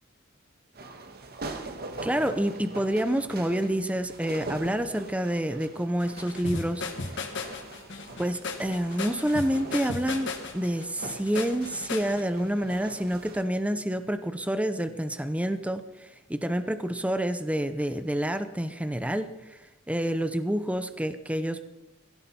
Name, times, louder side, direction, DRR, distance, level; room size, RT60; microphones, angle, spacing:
sound 1, 0.7-13.4, right 2 dB, 50° right, 1.6 m, -43 dB
voice 1, 2.0-6.8 8.2-19.6 19.9-21.6, equal, 5° right, 10 dB, 0.7 m, -28 dB
sound 2, 6.0-12.2, left 4 dB, 60° left, 2.0 m, -36 dB
19.5 x 16.5 x 4.3 m, 0.97 s
head